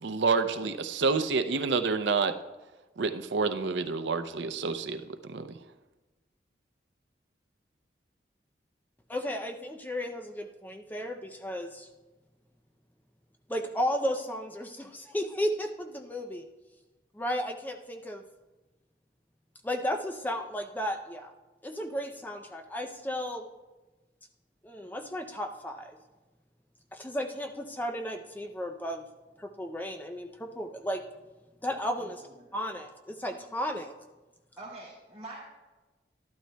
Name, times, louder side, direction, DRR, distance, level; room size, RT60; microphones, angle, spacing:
voice 1, 0.0-2.3 3.0-5.0 5.3-5.5, right 4 dB, 85° right, 9 dB, 0.6 m, -28 dB
voice 2, 9.1-11.9 13.5-16.4 17.1-18.2 19.6-21.3 21.6-23.4 24.6-26.0 26.9-29.0 29.4-31.0 31.6-33.9, equal, 10° left, 4 dB, 0.4 m, -34 dB
voice 3, 32.0-32.8 33.1-33.6 34.6-35.4, right 2 dB, 5° right, -11 dB, 2.6 m, -47 dB
12.5 x 12.0 x 2.2 m, 1.1 s
head